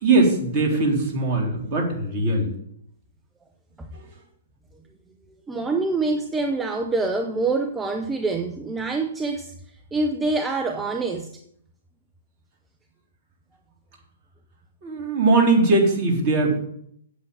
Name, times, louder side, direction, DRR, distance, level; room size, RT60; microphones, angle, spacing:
voice 1, 0.0-2.5 3.9-4.0 14.8-16.6, right 3 dB, 35° right, 3.8 m, -20 dB
voice 2, 5.5-9.5 9.9-11.3, right 3 dB, 10° right, 0.8 m, -25 dB
8.3 x 7.9 x 7.8 m
figure-of-eight pair, 120°, 0 cm